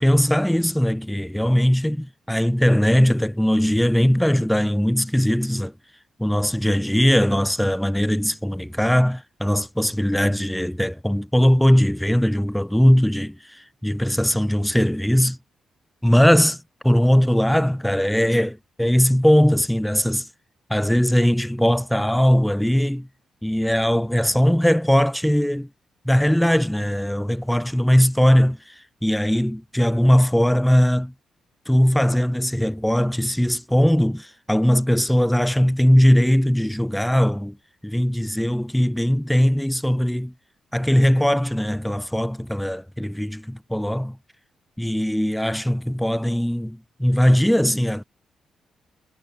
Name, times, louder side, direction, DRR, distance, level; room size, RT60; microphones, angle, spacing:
voice 1, 0.0-5.7 6.2-15.4 16.0-16.6 16.8-20.3 20.7-23.1 23.4-25.7 26.0-28.7 29.0-31.1 31.7-37.6 37.8-40.3 40.7-44.2 44.8-48.0, equal, 5° left, 0.7 m, -20 dB
cardioid pair, 80°, 0 cm